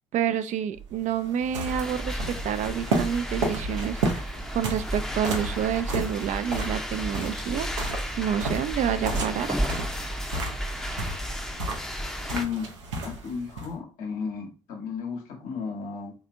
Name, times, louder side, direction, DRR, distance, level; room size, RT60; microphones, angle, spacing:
voice 1, 0.1-7.7 8.2-9.6, right 9 dB, 55° right, 0.4 m, -28 dB
sound 1, 0.8-13.7, right 2 dB, 90° right, 0.6 m, -33 dB
sound 2, 1.6-12.5, equal, 5° left, 0.6 m, -33 dB
voice 2, 12.2-12.7 13.0-16.1, left 6 dB, 65° left, 1.2 m, -33 dB
3.2 x 2.7 x 2.5 m
hypercardioid pair, 50°, 15 cm